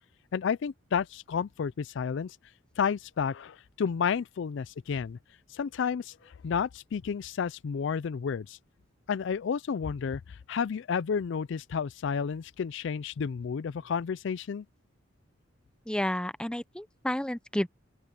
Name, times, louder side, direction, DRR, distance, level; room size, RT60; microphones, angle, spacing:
voice 1, 0.3-2.4 2.8-5.2 5.5-6.2 6.4-8.6 9.1-14.6, left 6 dB, 65° left, 0.4 m, -31 dB
voice 2, 15.9-17.7, left 1 dB, 5° left, 0.6 m, -31 dB
open air
head